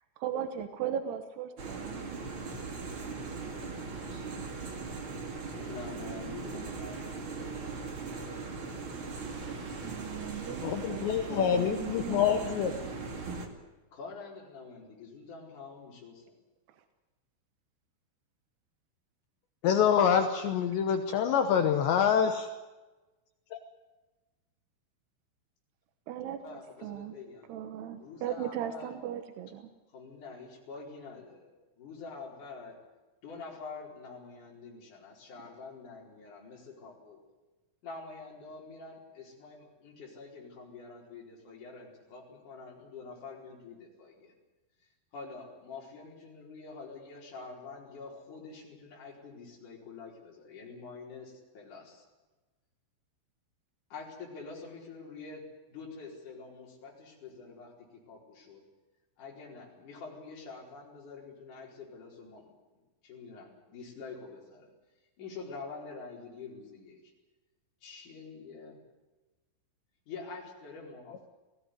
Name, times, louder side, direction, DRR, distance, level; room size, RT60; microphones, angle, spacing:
voice 1, 0.2-2.2 6.5-6.7 9.8-12.9 26.1-27.2 27.5-29.7, right 9 dB, 70° right, 9 dB, 2.6 m, -38 dB
sound 1, 1.6-13.5, right 4 dB, 40° right, 1.8 m, -39 dB
voice 2, 5.5-7.3 12.4-13.0 13.9-16.3 26.4-27.5 28.0-29.0 29.9-31.5 31.8-32.8 33.2-37.2 37.8-44.3 45.1-52.0 53.9-58.6 59.2-62.5 63.0-64.7 65.2-67.1 67.8-68.8 70.1-71.3, left 4 dB, 40° left, -2 dB, 5.7 m, -46 dB
voice 3, 10.6-12.7 19.6-22.5 23.5-23.6, left 8 dB, 70° left, 7 dB, 2.9 m, -26 dB
20.0 x 16.5 x 9.6 m, 1.2 s
omnidirectional pair, 5.9 m